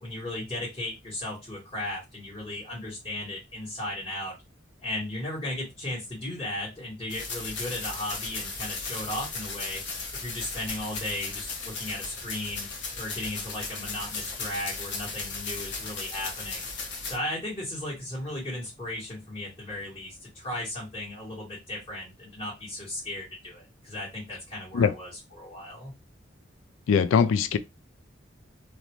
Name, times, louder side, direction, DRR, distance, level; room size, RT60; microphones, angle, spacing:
voice 1, 0.0-4.3 4.8-9.8 10.1-12.7 13.0-16.7 17.0-26.0, left 1 dB, 25° left, 1.1 m, -36 dB
sound 1, 7.1-17.2, left 4 dB, 60° left, 0.8 m, -36 dB
voice 2, 26.9-27.6, left 6 dB, 90° left, 0.3 m, -21 dB
2.5 x 2.1 x 3.0 m
head